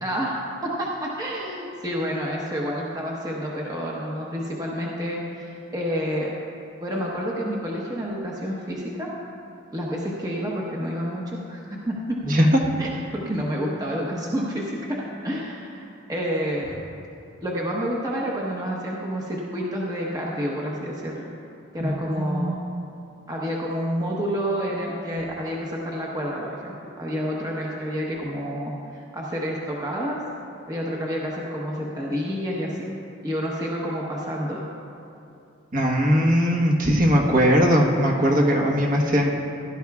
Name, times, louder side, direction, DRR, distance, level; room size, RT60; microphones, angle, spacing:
voice 1, 0.0-6.3 6.8-9.1 9.7-12.2 12.8-16.8 17.4-21.3 21.7-22.5 23.3-30.2 30.7-32.9 33.2-34.6, equal, 20° right, -3 dB, 1.0 m, -29 dB
voice 2, 21.8-22.4 35.7-39.3, equal, 45° right, 0 dB, 1.2 m, -20 dB
16.5 x 12.0 x 2.4 m, 2.6 s
head